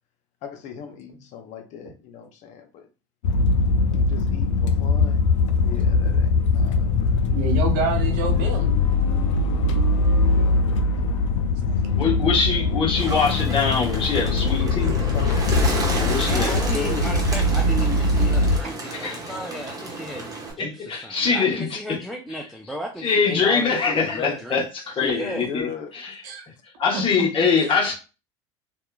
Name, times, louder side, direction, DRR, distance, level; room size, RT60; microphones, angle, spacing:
voice 1, 0.4-2.9 3.9-7.2 8.3-8.9 15.1-15.7 15.9-17.3 23.8-24.4 25.0-26.0, left 7 dB, 50° left, 0.7 m, -37 dB
sound 1, 3.2-18.6, left 3 dB, 80° left, 0.4 m, -21 dB
voice 2, 7.2-8.7 18.8-19.0 26.2-26.5 26.9-27.0 27.6-27.7, right 5 dB, 60° right, 0.9 m, -28 dB
voice 3, 11.9-15.0 15.9-16.6 18.9-19.2 20.6-21.7 23.0-25.7 25.9-26.1 26.8-27.9, left 5 dB, 35° left, 1.1 m, -23 dB
Bird, 12.9-20.5, right 3 dB, 25° right, 1.1 m, -32 dB
voice 4, 16.2-24.6 25.1-25.5, right 1 dB, ahead, 0.4 m, -34 dB
2.9 x 2.3 x 2.3 m
hypercardioid pair, 85°, 16 cm